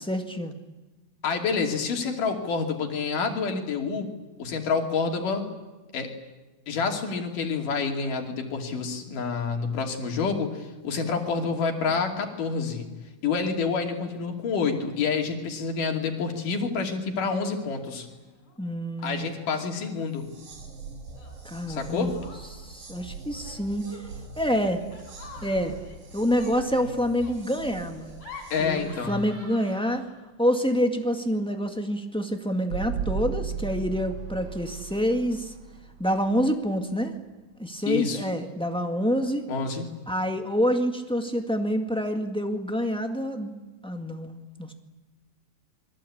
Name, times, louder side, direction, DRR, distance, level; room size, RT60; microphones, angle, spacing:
voice 1, 0.1-0.6 18.6-19.3 21.4-22.1 22.5-23.9 24.4-24.8 25.4-25.8 26.1-28.2 28.6-30.0 30.4-35.5 36.0-37.2 37.6-39.4 40.1-43.5 43.8-44.7, equal, 5° left, 4 dB, 0.9 m, -27 dB
voice 2, 1.2-4.1 4.4-5.5 5.9-6.1 6.7-12.9 13.2-18.1 19.0-20.3 21.7-22.2 28.5-29.2 37.9-38.2 39.5-39.9, left 5 dB, 75° left, 2 dB, 4.3 m, -28 dB
Laughter, 17.5-17.7 18.0-18.6 19.0-19.8 21.1-22.7 23.3-30.3, left 3 dB, 45° left, 8.3 m, -48 dB
sound 1, 20.1-29.1, right 3 dB, 90° right, 6.5 m, -43 dB
sound 2, 23.5-24.4 26.1-26.2 32.7-37.4, right 7 dB, 60° right, 2.3 m, -35 dB
28.0 x 23.0 x 8.7 m, 1.2 s
omnidirectional pair, 3.8 m